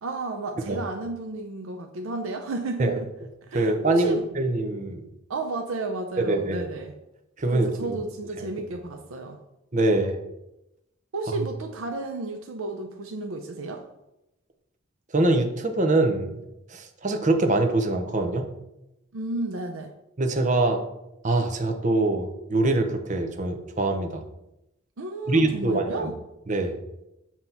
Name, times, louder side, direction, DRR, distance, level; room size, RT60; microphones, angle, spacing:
voice 1, 0.0-3.1 3.5-4.2 5.3-6.9 7.5-9.4 11.1-13.8 19.1-19.9 25.0-26.2, right 2 dB, 90° right, 5 dB, 0.6 m, -32 dB
voice 2, 3.5-5.0 6.2-6.7 7.4-8.0 9.7-10.1 15.1-16.4 16.7-18.5 20.2-20.8 21.2-24.2 25.3-26.1 26.5-26.7, right 2 dB, 35° right, 5 dB, 0.7 m, -24 dB
7.9 x 2.9 x 5.5 m, 0.90 s
head